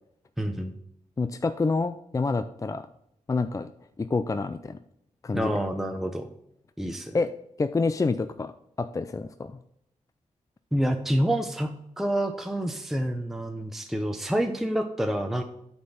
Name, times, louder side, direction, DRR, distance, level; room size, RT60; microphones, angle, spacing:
voice 1, 0.4-0.8 5.3-6.3 6.8-7.2 10.7-15.4, right 1 dB, ahead, 5 dB, 0.7 m, -28 dB
voice 2, 1.2-2.9 3.3-3.7 4.0-4.8 5.2-5.5 7.1-7.3 7.6-8.5 8.8-9.5, left 3 dB, 25° left, 10 dB, 0.4 m, -27 dB
8.2 x 4.4 x 5.8 m, 0.76 s
cardioid pair, 65°, 13 cm